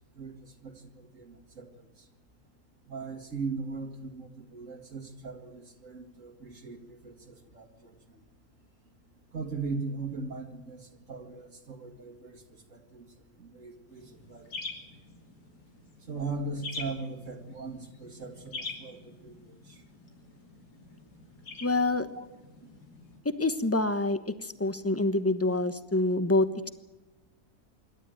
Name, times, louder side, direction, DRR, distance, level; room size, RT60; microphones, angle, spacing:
voice 1, 0.1-1.9 2.9-7.9 9.3-14.5 16.1-19.8 22.2-22.3, right 4 dB, 50° right, 5 dB, 2.4 m, -39 dB
sound 1, 13.9-23.2, left 3 dB, 90° left, 3.6 m, -45 dB
voice 2, 21.6-22.1 23.2-26.5, left 2 dB, 10° left, 12 dB, 1.0 m, -26 dB
26.5 x 12.5 x 9.2 m, 1.1 s
omnidirectional pair, 1.7 m